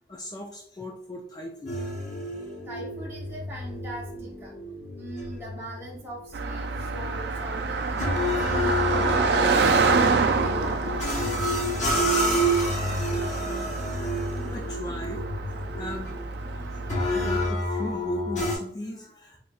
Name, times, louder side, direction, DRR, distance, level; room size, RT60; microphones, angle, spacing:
voice 1, 0.1-1.9 14.5-15.3 15.8-16.2 16.5-19.4, left 1 dB, 20° left, 1 dB, 0.3 m, -37 dB
sound 1, 1.7-18.6, equal, 40° left, 1.0 m, -30 dB
voice 2, 2.7-4.5 5.0-11.7, right 1 dB, 15° right, -5 dB, 0.7 m, -42 dB
Car passing by, 6.3-17.5, right 4 dB, 65° right, 0.4 m, -27 dB
4.2 x 3.2 x 2.3 m, 0.68 s
head